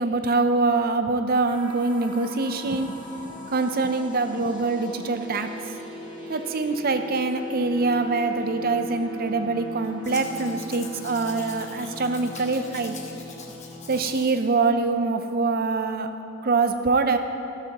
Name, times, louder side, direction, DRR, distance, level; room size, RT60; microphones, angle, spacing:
voice 1, 0.0-5.5 6.3-13.0 13.9-16.1 16.4-17.2, right 3 dB, 40° right, 8 dB, 0.6 m, -24 dB
sound 1, 1.4-14.2, left 2 dB, 10° right, 3.1 m, -39 dB
Domestic sounds home sounds, 10.0-14.4 14.8-14.9, left 5 dB, 30° left, 1.1 m, -43 dB
14.5 x 12.5 x 2.9 m, 2.7 s
head